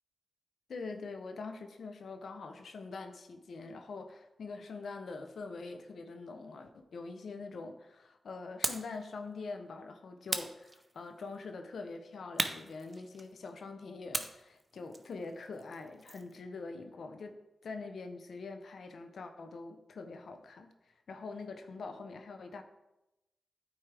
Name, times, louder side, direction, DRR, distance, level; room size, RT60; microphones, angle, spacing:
voice 1, 0.7-22.6, left 3 dB, 75° left, 6 dB, 0.5 m, -44 dB
sound 1, 8.6-9.0 10.3-11.2 12.4-13.5 14.1-16.4, right 2 dB, 25° right, 0.7 m, -38 dB
8.9 x 4.6 x 3.3 m, 0.96 s
supercardioid pair, 40°, 0 cm